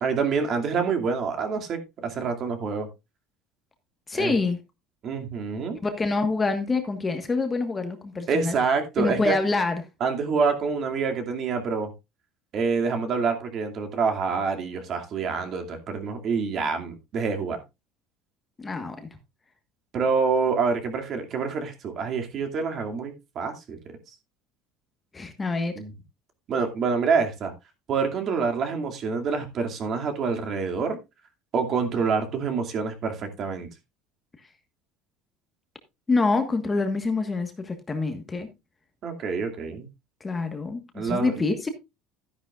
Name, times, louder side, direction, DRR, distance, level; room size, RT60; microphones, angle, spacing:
voice 1, 0.0-2.9 4.1-4.3 5.0-5.8 8.3-9.3 10.0-11.9 12.5-17.6 19.9-23.8 25.8-25.9 26.5-27.5 27.9-31.0 31.5-33.7 39.0-39.9 40.9-41.4, right 5 dB, 40° right, 2.4 m, -27 dB
voice 2, 4.1-4.6 5.8-8.5 9.0-9.8 18.6-19.0 25.1-25.8 36.1-38.5 40.2-41.7, left 3 dB, 15° left, 1.4 m, -26 dB
13.0 x 10.5 x 2.4 m
cardioid pair, 150°, 0 cm